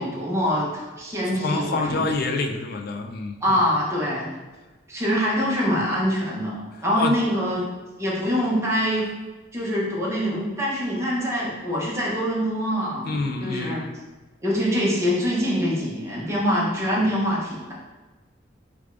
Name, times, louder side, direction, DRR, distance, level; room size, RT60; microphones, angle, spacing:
voice 1, 0.0-2.1 3.4-4.3 4.9-7.6 8.0-9.1 9.5-13.9 14.4-17.7, equal, 15° right, -6 dB, 0.8 m, -24 dB
voice 2, 1.4-3.6 6.9-7.1 13.0-13.9, left 3 dB, 50° left, 3 dB, 0.3 m, -27 dB
4.7 x 2.3 x 2.4 m, 1.2 s
head